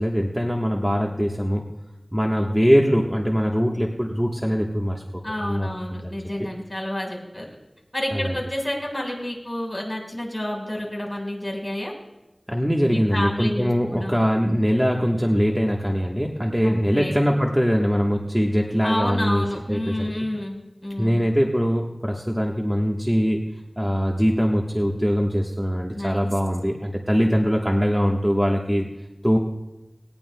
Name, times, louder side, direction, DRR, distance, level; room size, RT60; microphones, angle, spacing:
voice 1, 0.0-1.6 2.1-5.0 5.4-6.2 8.1-8.3 12.5-19.9 21.0-23.4 23.8-28.9 29.2-29.4, equal, 10° right, 0 dB, 1.2 m, -22 dB
voice 2, 5.2-7.5 7.9-11.9 12.9-14.2 16.6-17.1 18.8-21.2 25.9-26.2, left 1 dB, 25° left, -1 dB, 4.7 m, -29 dB
19.5 x 18.5 x 2.2 m, 1.0 s
wide cardioid pair, 40°, 0 cm